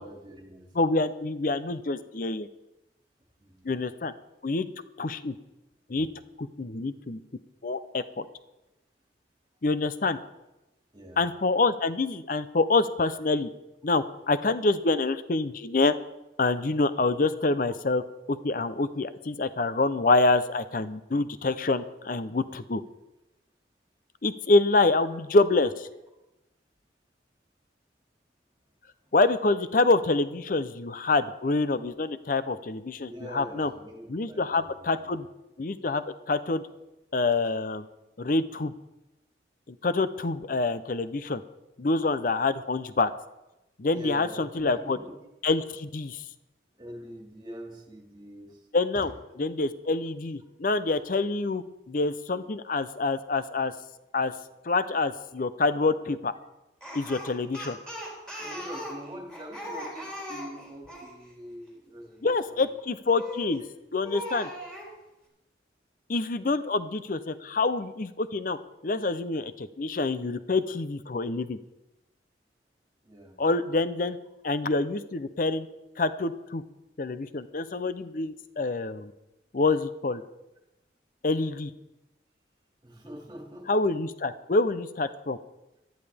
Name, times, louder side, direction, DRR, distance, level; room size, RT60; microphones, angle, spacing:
voice 1, 0.0-0.6 3.4-3.7 10.9-11.2 33.1-35.1 43.9-45.1 46.7-48.7 48.9-49.1 52.5-52.6 58.4-62.8 73.0-73.4 82.8-83.8, equal, 25° right, 1 dB, 2.2 m, -44 dB
voice 2, 0.8-2.5 3.6-4.1 4.4-4.7 5.0-5.3 5.9-6.1 6.4-7.2 7.6-8.2 9.6-10.2 11.2-13.5 13.8-15.9 16.4-18.0 18.3-22.8 24.2-25.9 29.1-33.7 34.1-35.3 35.6-36.6 37.1-37.9 38.2-38.7 39.7-41.4 41.8-43.1 43.8-45.0 45.4-46.2 48.7-49.1 49.4-53.7 54.1-54.3 54.6-56.3 56.9-57.8 62.2-63.6 63.9-64.5 66.1-68.6 68.8-71.6 73.4-74.2 74.4-75.7 76.0-76.6 77.0-79.1 79.5-80.2 81.2-81.7 83.7-85.4, left 3 dB, 45° left, 13 dB, 0.6 m, -26 dB
Speech, 56.8-61.1 63.1-63.6 64.0-64.9, equal, 5° left, 3.9 m, -39 dB
18.0 x 13.0 x 3.5 m, 0.96 s
head